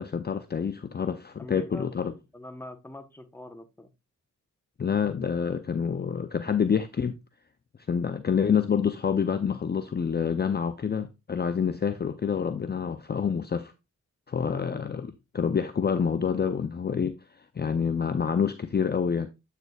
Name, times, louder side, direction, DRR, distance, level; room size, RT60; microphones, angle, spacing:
voice 1, 0.0-2.1 4.8-7.2 7.9-13.7 14.3-17.2 17.6-19.3, left 6 dB, 35° left, 0.5 m, -27 dB
voice 2, 1.4-1.9 2.3-3.9 14.4-14.8, left 1 dB, 5° left, 0.9 m, -43 dB
8.0 x 6.7 x 2.3 m
wide cardioid pair, 100°, 31 cm